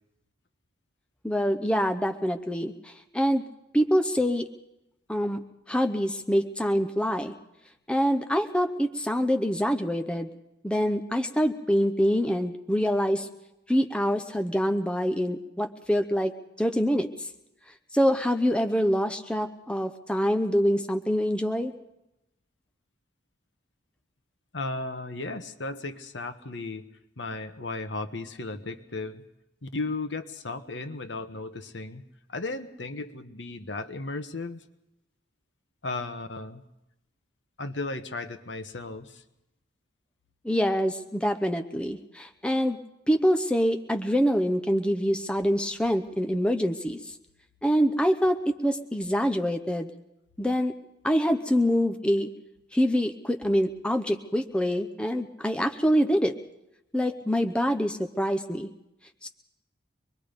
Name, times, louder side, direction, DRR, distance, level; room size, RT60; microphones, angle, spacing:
voice 1, 1.2-3.4 3.7-4.5 5.1-5.4 5.7-7.3 7.9-10.3 10.6-13.3 13.7-16.3 16.6-17.3 17.9-21.7 40.4-42.8 43.1-47.1 47.6-49.9 50.4-50.7 51.0-52.3 52.7-56.3 56.9-58.7 59.2-59.3, equal, 5° left, 6 dB, 0.7 m, -25 dB
voice 2, 24.5-26.8 27.2-29.2 29.6-32.0 32.3-34.6 35.8-36.6 37.6-39.2, left 3 dB, 80° left, 8 dB, 1.3 m, -35 dB
25.0 x 21.5 x 5.2 m, 0.91 s
head